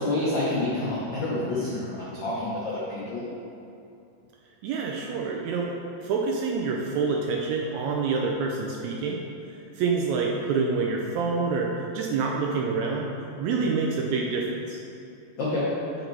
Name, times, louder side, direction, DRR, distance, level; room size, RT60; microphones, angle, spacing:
voice 1, 0.0-3.2 15.4-15.6, left 2 dB, 75° left, -8 dB, 1.0 m, -28 dB
voice 2, 4.6-5.7 6.0-9.2 9.8-13.1 13.4-14.8, right 4 dB, 80° right, 0 dB, 1.7 m, -27 dB
5.9 x 5.3 x 4.5 m, 2.6 s
omnidirectional pair, 3.6 m